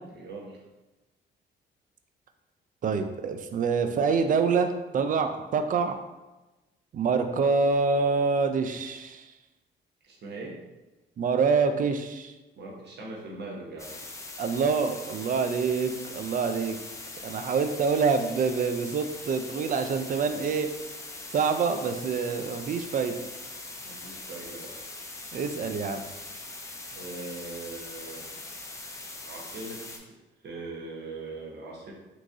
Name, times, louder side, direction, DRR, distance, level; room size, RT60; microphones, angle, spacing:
voice 1, 0.1-0.6 10.0-10.6 12.6-13.9 23.8-24.7 26.9-28.3 29.2-30.2 30.4-31.9, right 2 dB, 60° right, -2 dB, 1.0 m, -40 dB
voice 2, 2.8-6.0 6.9-9.2 11.2-12.3 14.4-16.8 17.2-20.7 21.3-23.2 25.3-26.0, right 5 dB, 45° right, 7 dB, 0.4 m, -26 dB
sound 1, 13.8-30.0, left 2 dB, 15° left, 0.5 m, -41 dB
3.5 x 3.0 x 2.6 m, 1.1 s
cardioid pair, 90°, 20 cm